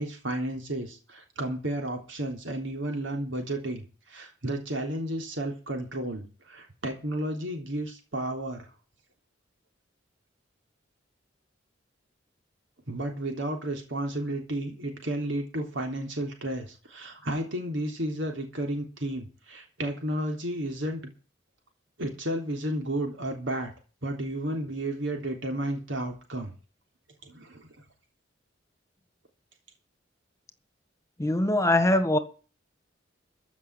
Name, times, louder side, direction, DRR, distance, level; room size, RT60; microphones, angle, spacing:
voice 1, 0.0-8.7 12.9-21.1 22.0-23.7 24.0-26.5 27.2-27.7, right 1 dB, 75° right, 3.4 m, -32 dB
voice 2, 31.2-32.2, left 1 dB, 15° left, 1.6 m, -22 dB
15.0 x 6.2 x 9.1 m
head